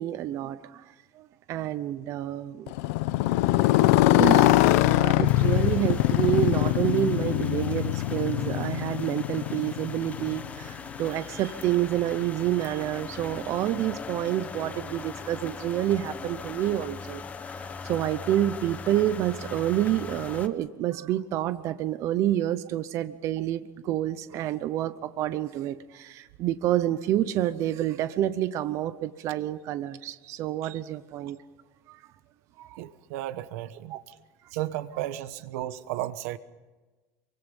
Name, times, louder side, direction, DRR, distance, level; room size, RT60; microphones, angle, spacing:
voice 1, 0.0-2.7 4.1-4.6 4.8-17.2 17.5-31.4 31.9-32.0 32.6-32.8 33.9-34.0, right 12 dB, 40° right, 13 dB, 0.8 m, -28 dB
Motorcycle, 2.7-10.7, left 17 dB, 90° left, 0.7 m, -23 dB
sound 1, 5.2-20.5, left 5 dB, 20° left, 1.0 m, -40 dB
voice 2, 32.8-34.2 34.5-36.4, right 14 dB, 90° right, 13 dB, 1.2 m, -34 dB
27.5 x 24.0 x 5.4 m, 1.2 s
cardioid pair, 175°, 8 cm